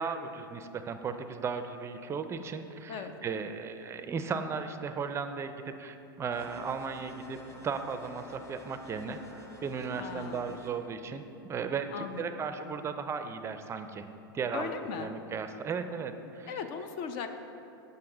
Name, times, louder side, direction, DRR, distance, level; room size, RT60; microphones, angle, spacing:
voice 1, 0.0-7.4 7.6-14.0 14.3-14.7 15.0-16.6, right 5 dB, 20° right, 9 dB, 0.4 m, -36 dB
sound 1, 6.3-10.7, left 2 dB, 20° left, 1.1 m, -49 dB
voice 2, 9.9-10.4 11.9-12.2 12.6-12.9 14.5-15.1 16.5-17.3, left 6 dB, 50° left, 8 dB, 0.5 m, -38 dB
7.6 x 5.5 x 3.8 m, 2.8 s
hypercardioid pair, 100°, 12 cm